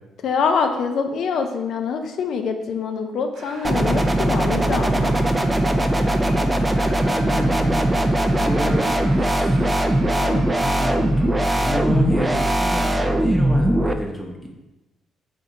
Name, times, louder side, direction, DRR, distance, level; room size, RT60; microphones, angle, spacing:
voice 1, 0.2-5.1 10.2-10.5, left 5 dB, 70° left, 6 dB, 0.4 m, -25 dB
sound 1, 3.3-13.4, right 2 dB, 60° right, 0.9 m, -42 dB
sound 2, 3.6-13.9, right 1 dB, 15° right, 0.3 m, -20 dB
voice 2, 7.0-7.9 8.2-9.7 10.6-14.3, equal, 15° left, 0 dB, 0.7 m, -29 dB
3.6 x 2.7 x 4.0 m, 1.0 s
cardioid pair, 90°, 0 cm